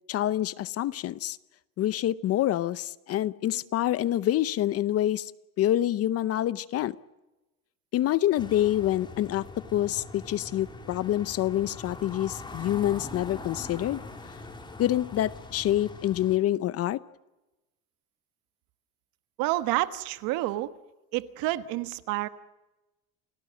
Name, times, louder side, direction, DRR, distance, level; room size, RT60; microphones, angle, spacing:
voice 1, 0.1-1.4 1.8-5.3 5.6-7.0 7.9-9.5 9.7-14.0 14.8-17.0, left 13 dB, 40° left, 18 dB, 0.7 m, -26 dB
sound 1, 8.4-16.4, left 2 dB, 15° left, 3.1 m, -42 dB
voice 2, 19.4-20.7 21.1-22.3, right 16 dB, 70° right, 12 dB, 1.4 m, -29 dB
29.0 x 18.5 x 7.7 m, 1.0 s
cardioid pair, 150°, 36 cm